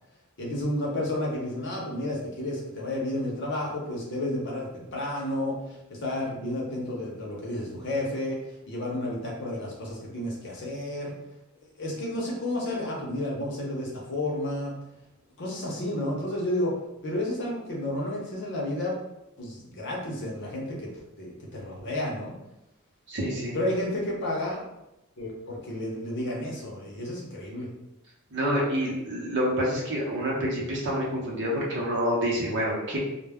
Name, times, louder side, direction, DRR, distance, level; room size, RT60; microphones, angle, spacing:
voice 1, 0.4-8.4 8.7-11.1 11.8-14.7 15.4-16.7 17.0-19.0 19.4-20.9 21.2-22.4 23.5-24.6 25.2-27.7, left 1 dB, 55° left, -2 dB, 0.7 m, -31 dB
voice 2, 23.1-23.6 28.3-33.0, equal, 55° right, -4 dB, 0.8 m, -27 dB
2.2 x 2.1 x 3.4 m, 0.92 s
head